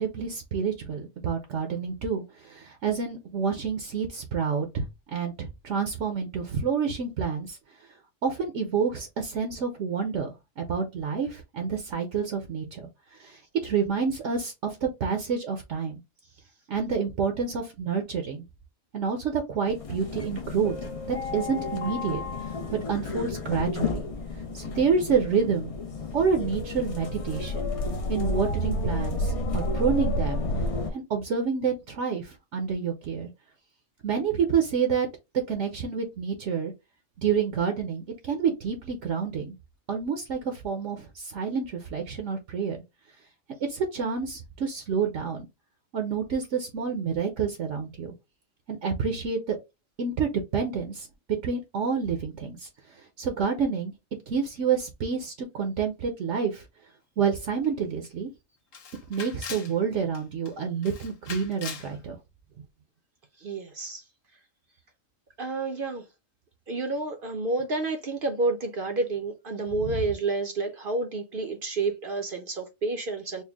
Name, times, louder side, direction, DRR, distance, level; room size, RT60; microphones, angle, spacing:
voice 1, 0.0-4.8 5.1-7.6 8.2-12.9 13.2-16.0 16.7-18.4 18.9-20.7 21.1-22.2 22.9-24.0 24.5-25.7 26.1-27.7 28.1-30.5 30.9-33.3 34.0-35.1 35.5-36.7 37.2-39.5 39.9-42.8 43.6-45.5 45.9-48.1 48.7-49.6 50.0-51.1 51.4-53.9 54.3-56.6 57.2-58.3 59.1-62.2 69.8-70.0, right 6 dB, 70° right, 1.0 m, -28 dB
sound 1, 19.7-30.9, left 2 dB, 40° left, 0.5 m, -31 dB
Camera, 57.6-57.7 58.0-58.1 58.7-59.7 60.1-60.5 60.8-61.9, left 6 dB, 80° left, 1.2 m, -40 dB
voice 2, 63.4-64.0 65.4-66.0 66.7-73.4, right 3 dB, 50° right, 0.7 m, -29 dB
4.4 x 2.1 x 3.4 m
omnidirectional pair, 1.3 m